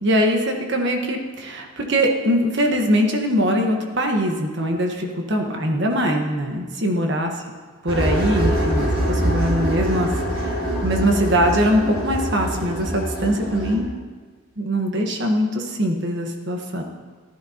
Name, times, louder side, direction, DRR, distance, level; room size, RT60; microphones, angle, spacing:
voice 1, 0.0-7.3 7.8-10.1 10.3-10.5 10.8-13.9 14.6-16.8, equal, 55° right, 2 dB, 1.3 m, -22 dB
sound 1, 7.9-13.7, equal, 80° right, 3.4 m, -24 dB
14.5 x 13.0 x 2.9 m, 1.4 s
head